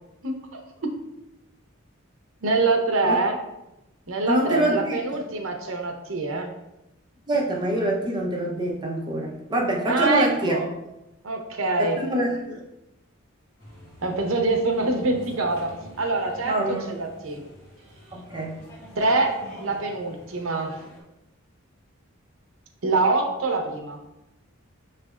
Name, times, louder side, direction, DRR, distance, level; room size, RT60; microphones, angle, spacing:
voice 1, 2.4-3.4 4.1-6.5 9.9-10.7 11.2-12.0 14.0-17.4 19.0-20.8 22.8-24.0, right 3 dB, 65° right, 3 dB, 0.7 m, -25 dB
voice 2, 4.3-5.0 7.3-10.6 11.8-12.6 16.5-16.9 18.1-18.6, right 1 dB, 20° right, -1 dB, 0.6 m, -25 dB
sound 1, 13.6-21.0, equal, 55° left, 1.6 m, -46 dB
6.0 x 3.3 x 2.4 m, 0.91 s
head